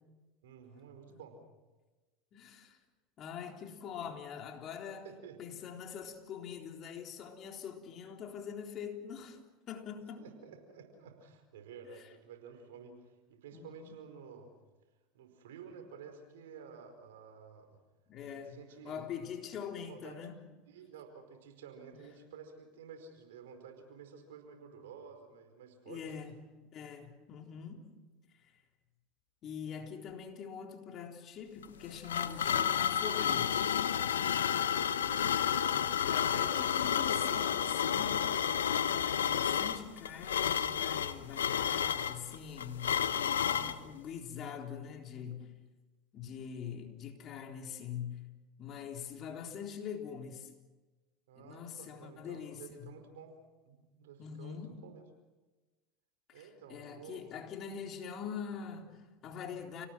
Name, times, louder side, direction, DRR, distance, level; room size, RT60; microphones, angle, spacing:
voice 1, 0.4-1.4 5.0-5.6 10.2-14.5 15.1-17.7 18.2-19.1 19.9-20.2 20.7-26.3 34.7-35.4 51.3-53.4 53.6-55.0 56.3-57.2, right 6 dB, 80° right, 4.9 m, -52 dB
voice 2, 2.3-2.8 3.2-5.1 5.4-9.4 9.7-10.3 11.9-12.0 13.5-13.9 18.1-18.6 18.8-20.4 25.9-26.3 26.7-27.9 28.4-28.5 29.4-33.7 35.8-38.3 38.7-45.5 46.1-48.2 48.6-50.5 51.4-52.9 54.2-54.8 56.3-59.9, left 7 dB, 45° left, 3.7 m, -44 dB
sound 1, 31.6-43.8, left 8 dB, 90° left, 0.9 m, -31 dB
30.0 x 18.5 x 6.2 m
hypercardioid pair, 90°, 0 cm